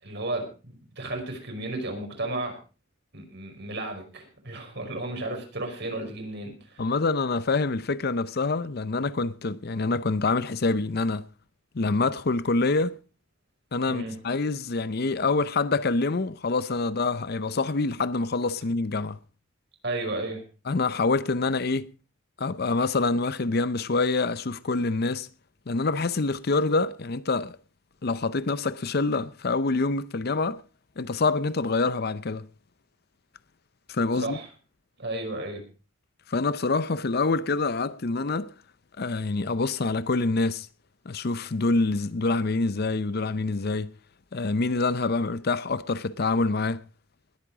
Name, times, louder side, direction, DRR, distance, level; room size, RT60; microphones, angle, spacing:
voice 1, 0.0-2.6 3.1-6.9 13.9-14.2 19.8-20.4 34.1-34.5 35.0-35.7, right 2 dB, 55° right, 5.4 m, -33 dB
voice 2, 6.8-11.3 11.7-12.9 13.7-19.2 20.7-21.9 22.4-25.3 25.7-27.5 28.0-30.6 31.0-32.5 33.9-34.4 36.3-38.5 39.0-40.7 41.1-43.9 44.3-46.8, left 3 dB, 50° left, 0.6 m, -26 dB
20.5 x 8.9 x 4.7 m
head